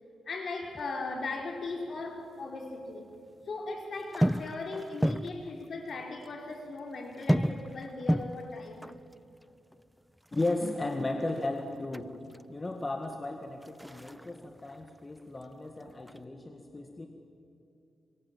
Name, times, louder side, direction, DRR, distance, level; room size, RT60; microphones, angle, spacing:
voice 1, 0.3-3.1 3.5-8.9, left 3 dB, 55° left, 3 dB, 4.4 m, -38 dB
sound 1, 0.6-2.3 2.5-3.5 3.9-6.0 6.2-6.3 6.6-12.4 12.9-15.4 15.7-16.2, equal, ahead, 0.5 m, -34 dB
voice 2, 10.3-12.2 12.5-17.1, left 2 dB, 25° left, 4 dB, 1.9 m, -35 dB
27.0 x 23.0 x 7.5 m, 2.7 s
cardioid pair, 95°, 0 cm